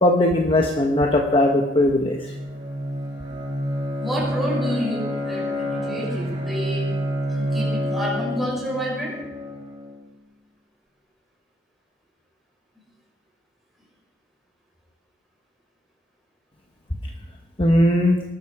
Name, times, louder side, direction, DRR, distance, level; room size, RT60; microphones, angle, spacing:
voice 1, 0.0-2.3 17.6-18.2, left 1 dB, 30° left, 2 dB, 1.2 m, -18 dB
Bowed string instrument, 2.1-10.0, equal, 25° right, 5.1 m, -28 dB
voice 2, 4.0-6.9 7.3-9.2, equal, ahead, -4 dB, 5.8 m, -29 dB
19.0 x 12.0 x 4.9 m, 1.1 s
head